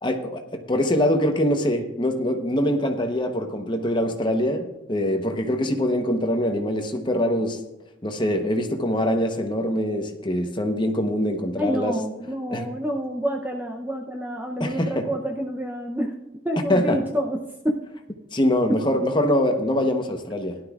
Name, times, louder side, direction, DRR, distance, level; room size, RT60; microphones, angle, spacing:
voice 1, 0.0-7.6 8.0-12.0 12.5-12.7 14.6-15.1 16.7-17.0 18.3-20.6, left 1 dB, 25° left, 5 dB, 0.9 m, -23 dB
voice 2, 11.6-16.1 16.4-17.4 17.6-17.8, equal, 10° right, 2 dB, 0.6 m, -28 dB
17.0 x 11.5 x 2.4 m, 0.96 s
head